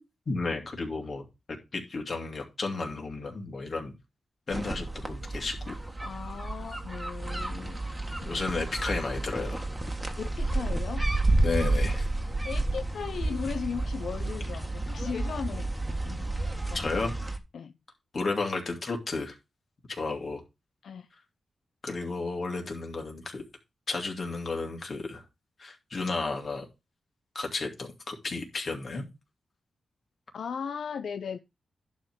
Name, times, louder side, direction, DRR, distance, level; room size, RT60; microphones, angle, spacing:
voice 1, 0.3-3.9 4.5-5.7 8.2-9.7 11.4-12.1 16.7-17.1 18.1-19.3 19.9-20.4 21.8-23.4 23.9-25.2 25.6-26.6 27.3-29.0, left 3 dB, 45° left, 2.7 m, -33 dB
sound 1, 4.5-17.4, right 2 dB, 15° right, 1.6 m, -31 dB
voice 2, 6.0-7.8 10.2-11.1 12.4-16.9 17.5-17.7 20.8-21.1 30.3-31.4, left 6 dB, 75° left, 0.5 m, -37 dB
11.0 x 3.8 x 6.4 m
wide cardioid pair, 100°, 0 cm